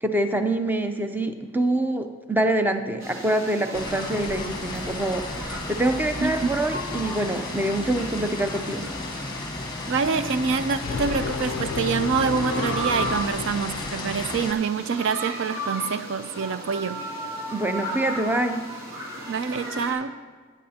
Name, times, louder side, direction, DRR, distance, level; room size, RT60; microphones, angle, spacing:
voice 1, 0.0-8.9 17.5-18.6, right 1 dB, 10° right, 7 dB, 0.5 m, -25 dB
sound 1, 3.0-19.9, right 1 dB, 75° right, 2.8 m, -36 dB
sound 2, 3.7-14.5, left 2 dB, 20° left, 1.0 m, -34 dB
voice 2, 9.9-17.0 19.3-20.1, right 5 dB, 60° right, 12 dB, 0.4 m, -26 dB
sound 3, 10.8-14.3, left 5 dB, 65° left, 0.3 m, -32 dB
19.5 x 9.3 x 2.8 m, 1.5 s
head